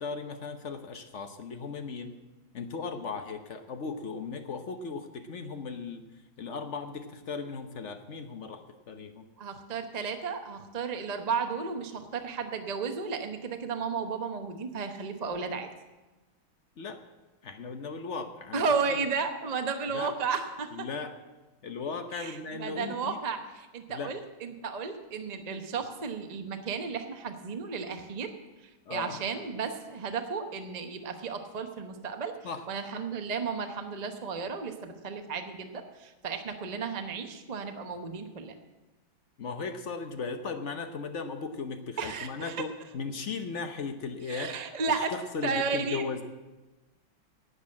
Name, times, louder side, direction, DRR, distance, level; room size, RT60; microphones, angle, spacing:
voice 1, 0.0-2.1 2.5-6.0 6.4-9.3 16.8-17.0 17.4-19.0 19.9-20.1 20.7-21.2 21.6-23.2 23.9-24.2 28.9-29.2 32.4-32.7 39.4-44.5 44.9-46.2, left 4 dB, 50° left, 7 dB, 0.8 m, -37 dB
voice 2, 9.4-15.7 18.5-20.9 22.1-28.3 28.9-32.3 32.7-38.6 42.0-42.6 44.3-45.1 45.4-46.0, right 5 dB, 40° right, 6 dB, 0.6 m, -33 dB
11.5 x 8.3 x 8.7 m, 1.1 s
omnidirectional pair, 2.3 m